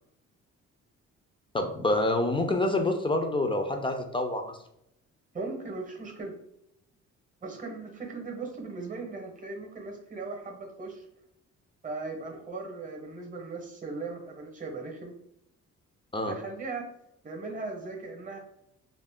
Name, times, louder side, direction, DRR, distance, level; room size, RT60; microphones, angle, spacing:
voice 1, 1.5-4.6 16.1-16.3, left 2 dB, 15° left, 4 dB, 0.4 m, -27 dB
voice 2, 5.3-6.3 7.4-11.1 11.8-15.1 16.3-16.9 17.2-18.4, right 3 dB, 25° right, 2 dB, 0.9 m, -38 dB
2.5 x 2.0 x 3.5 m, 0.77 s
cardioid pair, 90°, 30 cm